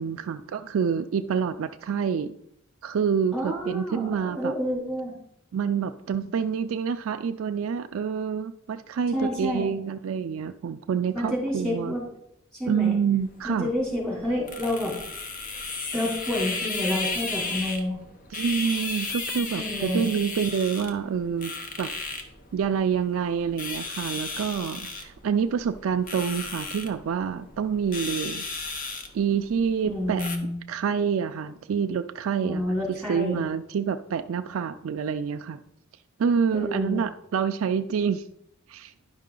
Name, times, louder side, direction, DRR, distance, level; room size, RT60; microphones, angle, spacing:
voice 1, 0.0-2.3 2.8-4.6 5.5-11.9 12.7-13.7 18.3-21.9 22.5-28.5 29.1-30.2 30.7-32.6 32.9-35.6 36.2-38.3 38.7-38.9, right 7 dB, 75° right, 8 dB, 0.4 m, -27 dB
voice 2, 3.3-5.1 9.1-9.7 11.1-12.0 12.6-13.0 13.4-14.9 15.9-18.0 19.5-20.0 29.8-30.5 32.4-33.4 36.5-37.0, left 1 dB, 5° left, -5 dB, 3.0 m, -29 dB
sound 1, 13.2-30.4, left 3 dB, 40° left, 0.9 m, -35 dB
10.5 x 5.6 x 3.8 m, 0.77 s
head